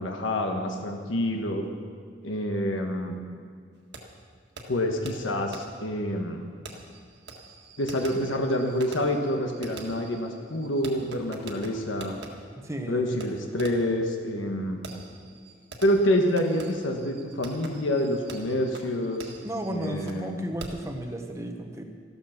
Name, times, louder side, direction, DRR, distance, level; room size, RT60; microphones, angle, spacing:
voice 1, 0.0-1.6 2.2-3.2 4.7-6.4 7.8-12.1 12.8-14.8 15.8-19.3 19.7-20.4, left 1 dB, 80° left, 3 dB, 1.3 m, -27 dB
Fireworks, 3.9-4.0 4.6-4.7 5.1-5.2 5.5-5.6 6.7-12.3 13.2-13.3 13.6-13.9 14.8-20.3 20.6-20.9, right 3 dB, 60° right, 1.7 m, -45 dB
voice 2, 12.6-13.2 19.4-21.8, right 1 dB, 15° right, 4 dB, 1.0 m, -34 dB
13.5 x 13.0 x 5.9 m, 2.2 s
head